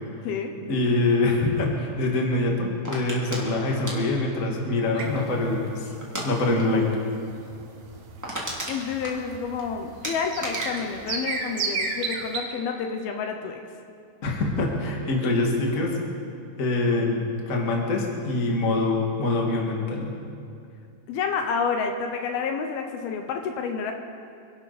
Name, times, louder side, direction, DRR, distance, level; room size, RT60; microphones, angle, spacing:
voice 1, 0.7-5.9 6.2-6.9 14.2-15.9 16.6-20.2, left 2 dB, 30° left, -1 dB, 1.8 m, -24 dB
sound 1, 2.8-5.4 6.0-6.3 6.6-6.8 7.1-7.2 7.6-7.7 7.9-9.6 10.0-12.1 12.4-12.8, right 1 dB, 5° right, 1.9 m, -35 dB
sound 2, 5.0-12.4, right 4 dB, 60° right, 2.2 m, -34 dB
voice 2, 8.7-13.6 21.1-23.9, left 5 dB, 75° left, 4 dB, 2.8 m, -29 dB
26.5 x 12.0 x 4.3 m, 2.4 s
omnidirectional pair, 4.6 m